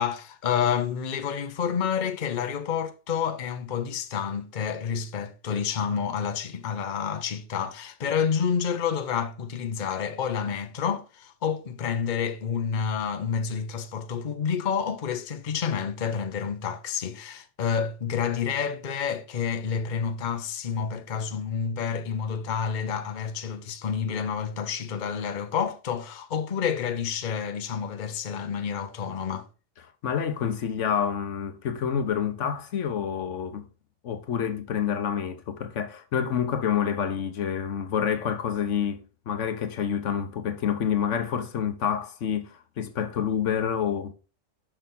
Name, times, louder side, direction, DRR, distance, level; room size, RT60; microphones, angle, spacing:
voice 1, 0.0-29.5, left 7 dB, 45° left, 0.9 m, -29 dB
voice 2, 30.0-33.7 34.0-44.1, left 8 dB, 80° left, 1.2 m, -28 dB
6.7 x 5.6 x 3.7 m
omnidirectional pair, 1.2 m